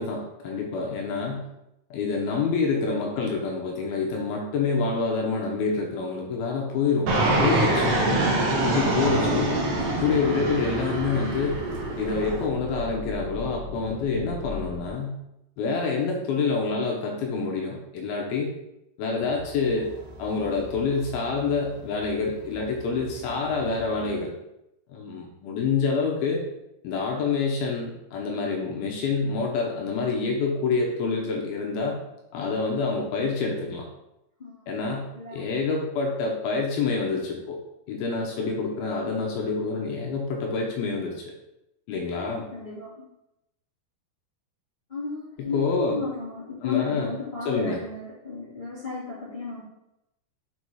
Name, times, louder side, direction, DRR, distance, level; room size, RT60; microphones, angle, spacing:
voice 1, 0.0-1.4 1.9-7.1 7.4-8.0 8.5-9.6 10.0-11.6 12.0-15.2 15.6-18.5 19.0-19.9 20.2-24.3 24.9-26.4 26.8-32.0 32.3-33.9 34.7-37.6 37.9-41.2 41.9-42.5 45.4-46.0 46.6-47.1 47.5-47.8, left 4 dB, 75° left, 0 dB, 2.6 m, -27 dB
Fixed-wing aircraft airplane, 7.1-12.5, right 2 dB, 90° right, 1.4 m, -24 dB
sound 1, 9.4-14.9, left 1 dB, 70° right, 2.4 m, -39 dB
sound 2, 19.2-24.2, right 2 dB, 55° right, 2.0 m, -46 dB
voice 2, 42.5-43.0 44.9-49.6, left 5 dB, 25° left, -9 dB, 1.1 m, -34 dB
7.1 x 4.1 x 4.7 m, 0.86 s
omnidirectional pair, 4.8 m